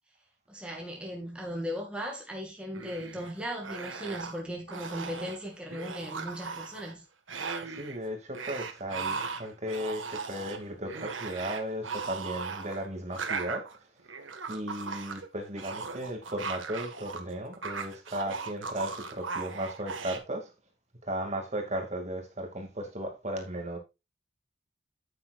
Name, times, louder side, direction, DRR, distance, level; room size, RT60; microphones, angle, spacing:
voice 1, 0.5-7.0, equal, 5° right, 2.1 m, -37 dB
sound 1, 2.7-3.3 3.6-4.4 4.7-5.4 5.7-6.9 7.3-8.0 8.3-17.2 17.5-20.2, right 5 dB, 85° right, 1.7 m, -38 dB
voice 2, 7.6-13.7 14.5-20.5 21.0-23.8, equal, 35° right, 2.4 m, -36 dB
9.4 x 9.2 x 2.5 m
head